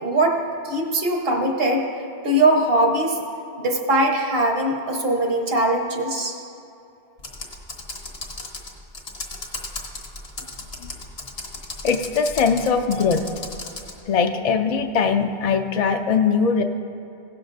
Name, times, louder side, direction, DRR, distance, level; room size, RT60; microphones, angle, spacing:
voice 1, 0.0-1.9 2.2-3.2 3.6-6.4, right 1 dB, 65° right, 1 dB, 1.4 m, -21 dB
Computer keyboard, 7.2-14.0, left 2 dB, 70° left, 1.5 m, -35 dB
voice 2, 11.8-13.2 14.1-16.6, left 5 dB, 50° left, 5 dB, 0.5 m, -21 dB
16.5 x 11.5 x 2.6 m, 2.7 s
omnidirectional pair, 1.1 m